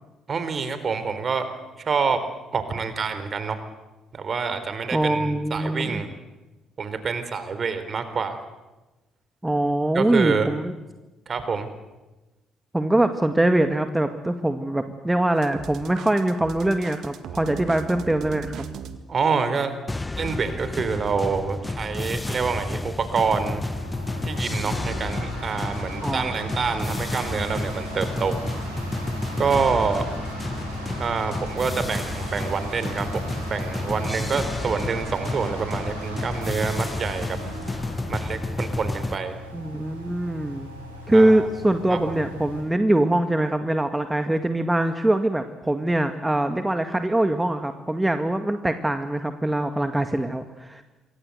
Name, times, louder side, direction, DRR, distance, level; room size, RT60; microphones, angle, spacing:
voice 1, 0.3-1.5 1.8-2.2 2.5-3.6 4.1-6.1 6.8-8.4 9.9-10.5 11.3-11.7 19.1-19.7 20.2-23.6 24.2-28.5 29.4-30.1 31.0-37.4 38.1-39.4 41.1-41.5 41.9-42.2, right 5 dB, 40° right, 11 dB, 4.0 m, -27 dB
voice 2, 4.9-6.0 9.4-10.7 12.7-18.7 26.0-26.3 39.5-40.7 41.1-50.8, right 1 dB, 10° right, 8 dB, 1.9 m, -23 dB
sound 1, 15.4-19.0, right 7 dB, 55° right, 2.1 m, -38 dB
sound 2, 19.9-39.2, left 2 dB, 20° left, 1.5 m, -31 dB
sound 3, 23.6-42.6, equal, 90° right, 6.6 m, -37 dB
27.5 x 23.5 x 8.1 m, 1.1 s
figure-of-eight pair, 45°, 0 cm